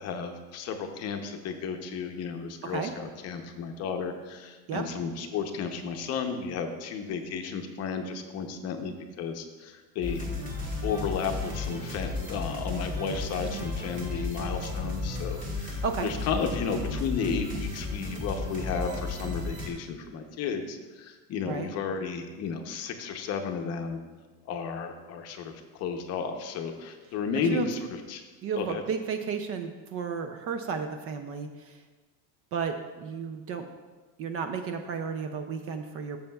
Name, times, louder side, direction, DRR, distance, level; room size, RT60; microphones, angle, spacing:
voice 1, 0.0-10.2 10.8-24.0 24.4-27.8 28.1-28.2 28.6-28.8, left 6 dB, 40° left, 5 dB, 0.7 m, -33 dB
sound 1, 10.0-19.7, left 3 dB, 20° right, 1.4 m, -34 dB
voice 2, 28.4-31.8 32.5-33.6 34.2-36.2, right 6 dB, 35° right, 6 dB, 0.4 m, -33 dB
13.0 x 6.9 x 2.3 m, 1.3 s
cardioid pair, 160°, 41 cm